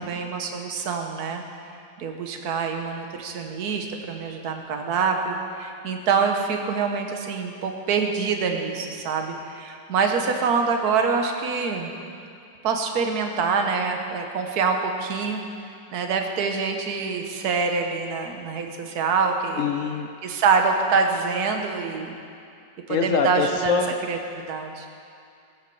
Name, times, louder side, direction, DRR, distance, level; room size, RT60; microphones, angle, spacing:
voice 1, 0.0-1.4 2.0-11.9 12.6-15.4 15.9-19.7 20.2-22.1 22.9-23.8 24.1-24.9, right 5 dB, 55° right, 4 dB, 1.5 m, -25 dB
voice 2, 19.6-20.1 22.9-24.0, left 6 dB, 80° left, 5 dB, 0.7 m, -24 dB
20.0 x 8.1 x 4.8 m, 2.5 s
omnidirectional pair, 2.1 m